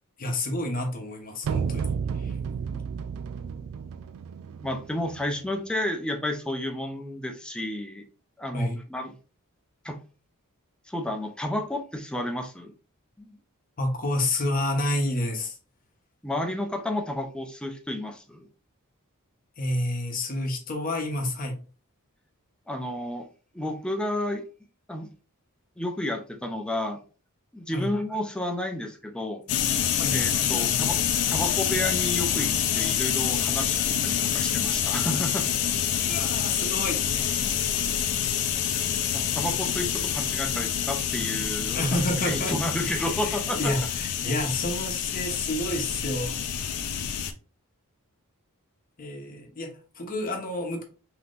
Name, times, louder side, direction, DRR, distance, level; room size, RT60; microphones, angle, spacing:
voice 1, 0.2-2.3 8.5-8.8 13.8-15.6 19.6-21.6 27.7-27.9 30.0-30.2 36.0-37.4 41.7-42.6 42.8-46.4 49.0-50.8, left 1 dB, 40° left, 0.8 m, -29 dB
sound 1, 1.4-5.5, right 6 dB, 65° right, 0.3 m, -32 dB
voice 2, 4.6-8.0 8.4-9.1 9.8-10.0 10.9-12.7 13.2-13.4 16.2-18.5 22.7-23.3 23.5-24.4 24.9-25.1 25.8-27.0 27.5-29.4 30.1-31.0 31.3-35.5 39.1-42.0 42.2-43.7, left 1 dB, 5° left, 0.5 m, -31 dB
sound 2, 29.5-47.3, left 9 dB, 80° left, 0.5 m, -27 dB
3.6 x 2.8 x 2.4 m
head